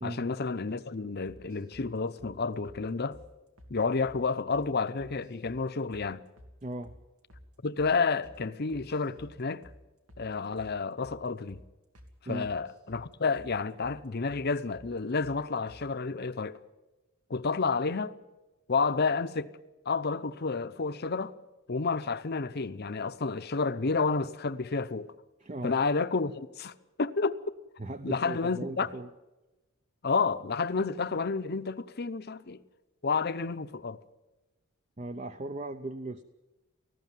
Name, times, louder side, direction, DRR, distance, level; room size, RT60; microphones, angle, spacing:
voice 1, 0.0-3.2 3.7-6.2 7.6-9.6 10.2-11.6 12.3-16.6 17.3-18.1 18.7-19.5 19.9-21.3 21.7-25.1 25.6-26.7 27.0-27.4 28.0-28.9 30.0-32.6 33.0-34.0, left 4 dB, 50° left, 0.7 m, -30 dB
sound 1, 1.3-1.9 2.2-2.3 2.6-2.8 3.1-3.3 3.6-3.7 4.0-4.2 4.5-4.7 5.0-5.6 5.9-6.1 6.4-6.5 6.8-7.0 7.3-7.5 7.8-7.9 8.2-8.4 8.7-9.3 9.6-9.8 10.1-10.3 10.6-10.7 11.0-11.2 11.5-11.6 11.9-12.1 12.4-13.0 13.3-13.5 13.8-14.0 14.3-14.4 14.7-14.9 15.2-15.4 15.7-15.8, equal, 85° right, 2.7 m, -52 dB
voice 2, 6.6-6.9 12.3-12.5 25.4-25.8 27.8-29.1 35.0-36.2, right 2 dB, 35° right, 0.7 m, -37 dB
19.0 x 15.0 x 9.2 m
head